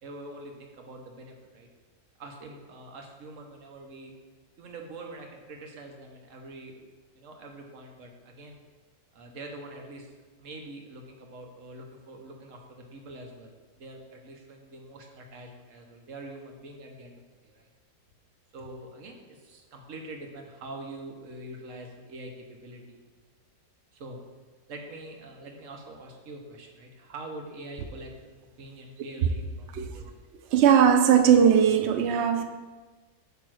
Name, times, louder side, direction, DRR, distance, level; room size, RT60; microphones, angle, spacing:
voice 1, 0.0-1.7 2.2-4.1 4.6-6.8 7.1-8.6 9.1-17.7 18.5-23.0 23.9-24.2 24.7-28.1 28.6-30.2, right 2 dB, 55° right, 1.2 m, -44 dB
voice 2, 30.5-32.4, right 8 dB, 80° right, 0.5 m, -19 dB
8.3 x 3.1 x 6.2 m
omnidirectional pair, 1.8 m